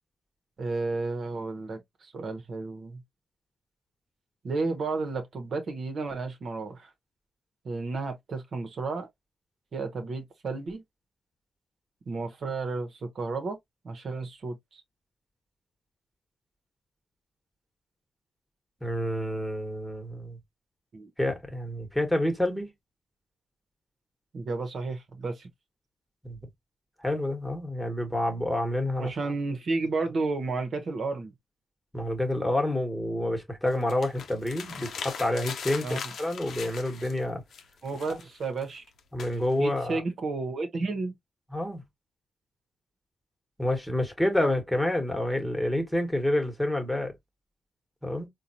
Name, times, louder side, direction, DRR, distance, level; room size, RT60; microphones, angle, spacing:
voice 1, 0.6-3.0 4.4-6.9 7.6-9.1 9.7-10.8 12.1-13.6 13.8-14.8 20.9-21.1 24.3-25.5 29.0-31.3 35.8-36.1 37.8-38.8 39.6-41.1, right 3 dB, 65° right, 1.0 m, -32 dB
voice 2, 18.8-20.4 21.2-22.7 26.2-26.4 27.0-29.1 31.9-37.4 39.1-40.0 41.5-41.8 43.6-47.1 48.0-48.3, left 1 dB, 5° left, 1.3 m, -28 dB
sound 1, 33.7-37.3 37.5-39.8, left 6 dB, 80° left, 0.6 m, -40 dB
3.8 x 2.3 x 2.8 m
cardioid pair, 65°, 0 cm